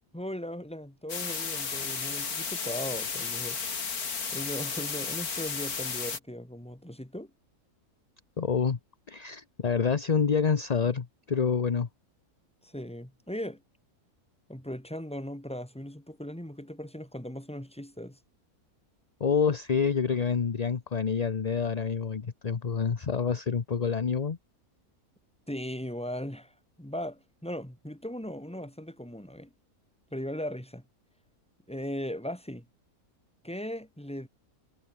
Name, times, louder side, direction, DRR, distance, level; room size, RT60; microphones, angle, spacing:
voice 1, 0.1-3.6 4.3-7.3 12.6-13.6 14.5-18.2 25.5-26.5 26.8-29.5 30.1-30.8 31.7-32.6 33.4-34.3, equal, 5° left, 3.0 m, -38 dB
sound 1, 1.1-6.2, left 5 dB, 75° left, 2.9 m, -33 dB
voice 2, 8.4-8.8 9.1-11.9 19.2-24.4, left 6 dB, 35° left, 0.8 m, -27 dB
omnidirectional pair, 1.6 m